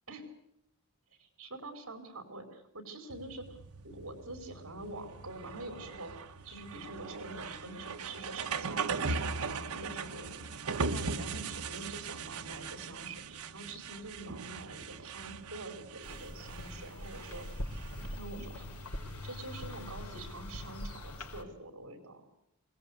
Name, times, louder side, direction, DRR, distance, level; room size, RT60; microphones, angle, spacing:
voice 1, 1.2-3.6 3.8-6.1 6.4-17.7 18.0-18.7 19.2-22.3, right 2 dB, 60° right, 6 dB, 4.7 m, -46 dB
sound 1, 3.1-21.0, right 4 dB, 85° right, 1.1 m, -40 dB
sound 2, 16.0-21.4, left 1 dB, 85° left, 4.5 m, -42 dB
26.5 x 19.0 x 8.3 m, 0.79 s
head